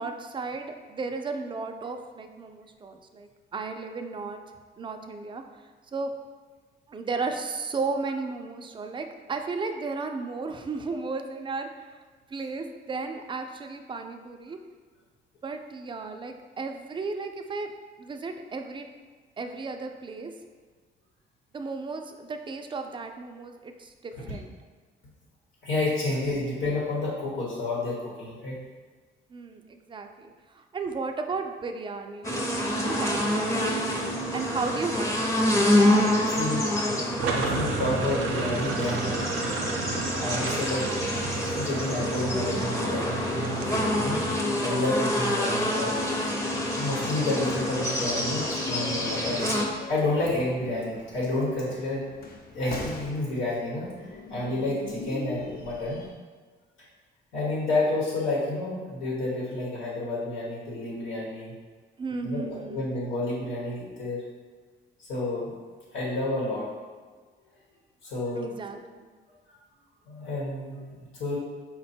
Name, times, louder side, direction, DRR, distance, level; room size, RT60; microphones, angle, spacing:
voice 1, 0.0-4.4 4.8-5.4 5.9-6.1 6.9-12.0 12.3-14.6 15.4-17.7 18.0-18.9 19.4-20.3 21.5-24.5 29.3-34.0 34.3-35.4 62.0-62.8 68.4-69.1, right 4 dB, 25° right, 5 dB, 0.4 m, -34 dB
voice 2, 25.6-28.6 36.3-36.6 37.3-39.1 40.1-40.9 41.6-44.2 44.6-45.9 46.8-49.5 49.9-52.0 52.5-53.9 54.3-56.0 57.3-61.5 62.2-64.2 65.0-65.5 65.9-66.7 68.0-68.5 70.1-71.4, left 2 dB, 80° left, -5 dB, 1.2 m, -30 dB
sound 1, 32.2-49.7, left 1 dB, 15° left, 0.7 m, -27 dB
sound 2, 37.2-44.4, right 4 dB, 85° right, 0.5 m, -32 dB
sound 3, 47.3-56.1, left 3 dB, 50° left, 0.6 m, -42 dB
4.5 x 2.2 x 4.2 m, 1.4 s
cardioid pair, 90°, 20 cm